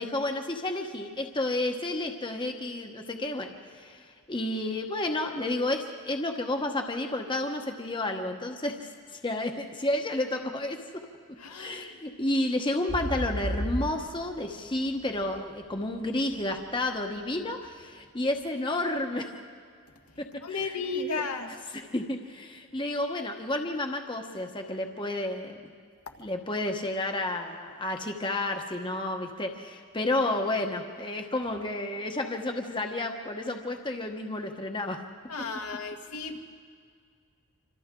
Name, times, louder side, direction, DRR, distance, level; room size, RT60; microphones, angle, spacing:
voice 1, 0.0-11.0 11.5-19.3 20.2-21.2 21.7-25.7 26.2-35.0, left 1 dB, 20° left, 3 dB, 1.1 m, -31 dB
voice 2, 11.4-11.8 20.4-21.6 35.3-36.4, left 4 dB, 85° left, 2 dB, 1.8 m, -34 dB
sound 1, 12.9-16.8 17.3-17.4, equal, 65° right, 2.0 m, -34 dB
27.0 x 26.5 x 3.8 m, 2.1 s
head